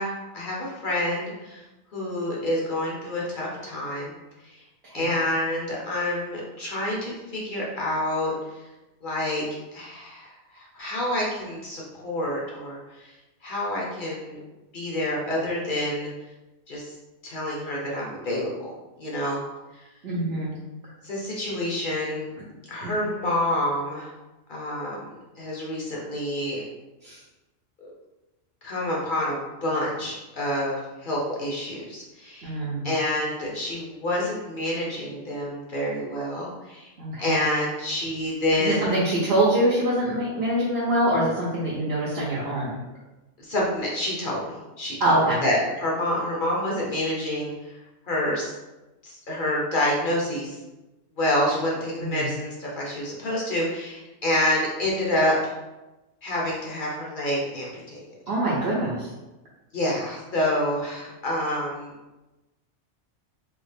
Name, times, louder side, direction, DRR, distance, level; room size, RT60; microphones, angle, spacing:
voice 1, 0.0-1.6 1.9-4.1 4.5-4.6 4.9-8.3 9.0-9.4 9.7-13.1 13.4-14.4 14.7-16.1 16.7-16.9 17.2-18.5 19.0-19.4 19.7-19.8 21.0-22.3 22.7-24.1 24.5-25.0 25.4-26.6 27.8-27.9 28.6-32.5 32.8-36.9 37.2-39.0 43.4-47.7 48.1-48.5 49.0-50.6 51.2-55.5 56.2-58.0 59.7-61.9, left 1 dB, 50° left, -4 dB, 0.8 m, -28 dB
voice 2, 20.0-20.5 20.8-20.9 22.8-22.9 27.0-27.2 32.4-32.9 37.0-37.4 38.6-42.8 45.0-45.4 52.0-52.3 58.3-59.1, right 1 dB, 60° right, -6 dB, 0.9 m, -24 dB
3.4 x 2.4 x 3.3 m, 1.1 s
omnidirectional pair, 1.3 m